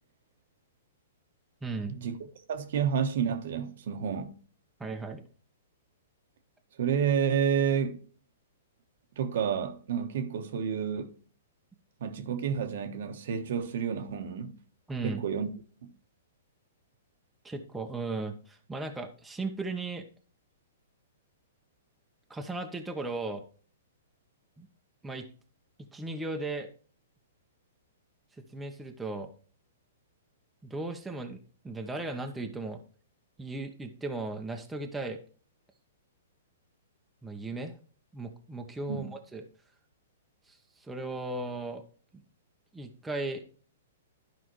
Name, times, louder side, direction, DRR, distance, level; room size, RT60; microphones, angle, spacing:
voice 1, 1.6-2.0 4.8-5.3 14.9-15.2 17.4-20.0 22.3-23.4 24.6-24.7 25.0-25.3 25.8-26.7 28.5-29.3 30.6-31.4 31.6-32.8 33.4-35.2 37.2-37.8 38.1-39.4 40.5-41.8 42.7-43.4, right 2 dB, 5° right, 1.0 m, -36 dB
voice 2, 2.5-4.3 6.8-8.0 9.2-11.1 12.0-14.5 15.0-15.5 15.8-15.9 38.9-39.1, right 7 dB, 65° right, 1.2 m, -30 dB
12.0 x 5.0 x 3.1 m
hypercardioid pair, 135°, 0 cm